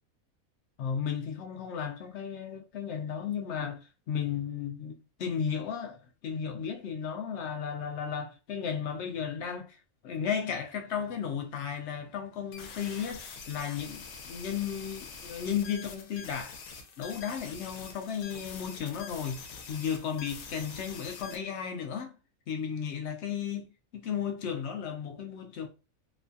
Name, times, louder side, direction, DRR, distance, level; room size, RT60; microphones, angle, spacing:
voice 1, 0.8-9.8 10.0-16.6 17.0-22.1 22.5-25.7, left 7 dB, 65° left, 0.7 m, -34 dB
sound 1, 12.5-21.4, left 5 dB, 80° left, 1.1 m, -45 dB
3.1 x 2.2 x 2.5 m
omnidirectional pair, 1.5 m